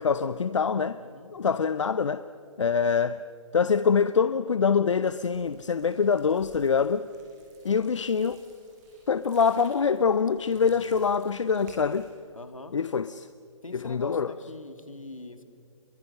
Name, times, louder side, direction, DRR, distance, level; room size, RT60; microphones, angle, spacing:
voice 1, 0.0-1.0 1.3-2.2 2.6-3.2 3.5-7.1 7.6-8.4 9.1-12.1 12.7-13.3 13.7-14.3, left 6 dB, 65° left, 0.7 m, -24 dB
voice 2, 1.0-1.3 10.5-11.0 12.3-12.7 13.6-15.4, left 2 dB, 80° left, 2.4 m, -42 dB
sound 1, 5.0-12.1, right 2 dB, 35° right, 6.9 m, -56 dB
27.0 x 23.0 x 6.7 m
figure-of-eight pair, 130°, 17 cm